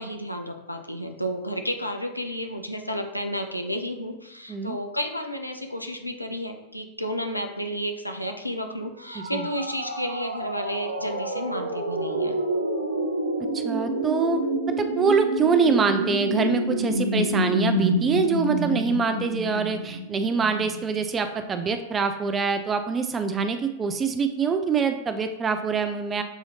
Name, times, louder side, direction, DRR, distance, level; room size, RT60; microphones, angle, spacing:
voice 1, 0.0-12.3, equal, 90° left, 4 dB, 0.5 m, -32 dB
sound 1, 9.0-20.8, right 1 dB, 80° right, 0.6 m, -28 dB
voice 2, 13.5-14.4 14.7-26.2, right 5 dB, 20° right, 7 dB, 0.4 m, -25 dB
6.9 x 2.8 x 2.8 m, 0.91 s
figure-of-eight pair, 90°, 0 cm